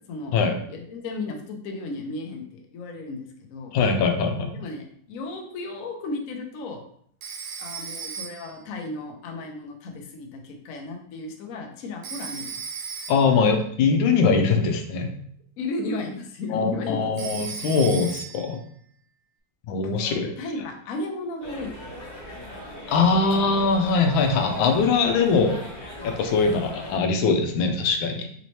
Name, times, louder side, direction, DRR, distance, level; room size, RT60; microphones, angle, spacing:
voice 1, 0.0-0.3 0.7-3.7 4.5-6.8 7.6-12.5 15.6-17.1 19.8-22.0, left 2 dB, 65° left, 3 dB, 0.8 m, -34 dB
voice 2, 3.7-4.5 13.1-15.1 16.5-18.6 19.7-20.3 22.9-25.6 26.0-28.3, left 4 dB, 90° left, 5 dB, 1.4 m, -22 dB
Telephone, 7.2-8.6 12.0-13.4 17.2-18.6, right 6 dB, 75° right, 1.0 m, -36 dB
sound 1, 21.4-27.0, left 1 dB, 35° left, 0.9 m, -38 dB
4.2 x 2.7 x 3.1 m, 0.64 s
omnidirectional pair, 2.1 m